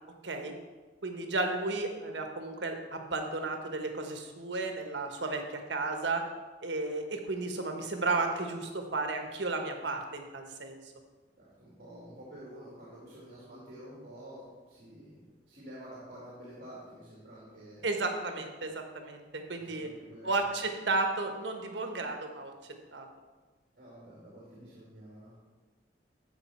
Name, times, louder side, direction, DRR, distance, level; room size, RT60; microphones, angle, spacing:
voice 1, 0.2-0.5 1.0-6.3 6.6-10.9 17.8-19.9 20.2-22.5 22.9-23.1, right 3 dB, 90° right, 5 dB, 1.2 m, -33 dB
voice 2, 11.4-17.8 18.6-18.7 19.6-20.4 23.7-25.3, equal, 55° right, -6 dB, 2.7 m, -49 dB
14.5 x 5.0 x 4.3 m, 1.3 s
head